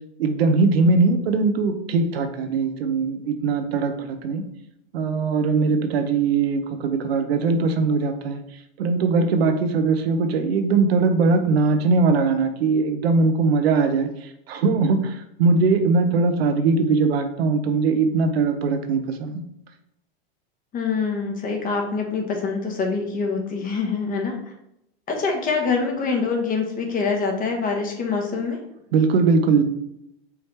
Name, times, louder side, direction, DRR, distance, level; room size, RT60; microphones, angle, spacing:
voice 1, 0.2-4.4 4.9-8.4 8.8-14.1 14.5-19.4 28.9-29.6, right 4 dB, 85° right, 7 dB, 0.7 m, -20 dB
voice 2, 20.7-24.4 25.1-28.6, left 4 dB, 30° left, 2 dB, 0.9 m, -25 dB
4.8 x 3.1 x 3.1 m, 0.79 s
hypercardioid pair, 120°, 30 cm